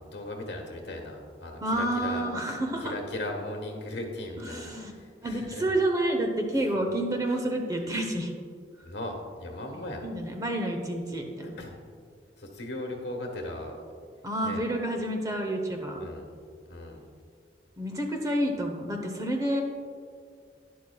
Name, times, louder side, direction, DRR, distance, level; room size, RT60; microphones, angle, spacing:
voice 1, 0.0-5.6 6.7-6.8 8.8-10.1 11.4-11.7 12.4-13.8 14.4-14.6 16.0-16.3 16.7-17.0, left 1 dB, 65° left, 2 dB, 1.4 m, -38 dB
voice 2, 1.6-2.9 4.4-4.9 5.2-8.3 9.7-11.6 14.2-16.1 17.8-19.6, right 1 dB, 20° right, 3 dB, 0.8 m, -29 dB
11.5 x 10.5 x 2.3 m, 2.1 s
head